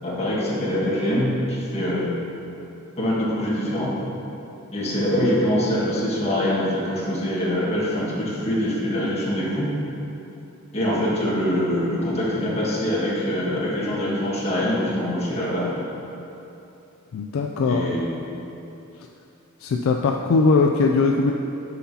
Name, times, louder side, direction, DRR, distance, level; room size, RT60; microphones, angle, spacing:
voice 1, 0.0-2.1 3.0-3.9 4.7-9.7 10.7-15.7 17.7-18.2, equal, 30° left, -7 dB, 1.6 m, -24 dB
voice 2, 17.1-17.9 19.6-21.3, left 4 dB, 65° left, 2 dB, 0.3 m, -20 dB
9.7 x 5.8 x 2.8 m, 2.9 s
head